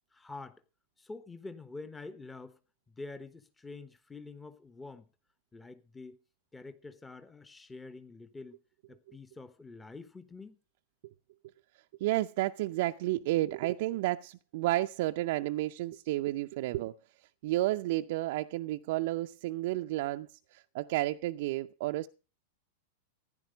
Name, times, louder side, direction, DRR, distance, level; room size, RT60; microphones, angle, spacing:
voice 1, 0.1-0.6 1.0-2.6 2.9-5.1 5.5-6.2 6.5-8.6 8.9-10.6, left 3 dB, 10° left, 1.1 m, -46 dB
voice 2, 12.0-16.9 17.4-22.1, right 16 dB, 55° right, 0.6 m, -31 dB
15.5 x 10.5 x 5.1 m
figure-of-eight pair, 95°, 0 cm